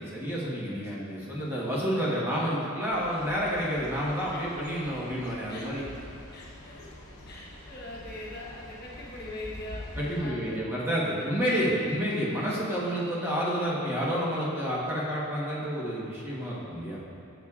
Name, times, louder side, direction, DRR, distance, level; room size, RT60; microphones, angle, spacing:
voice 1, 0.0-5.8 10.0-17.0, equal, 10° right, -7 dB, 1.1 m, -29 dB
sound 1, 2.9-10.2, left 1 dB, 70° left, 1.1 m, -45 dB
voice 2, 6.3-6.9 7.3-11.8, left 1 dB, 45° left, -4 dB, 1.1 m, -43 dB
11.5 x 6.9 x 2.4 m, 2.6 s
head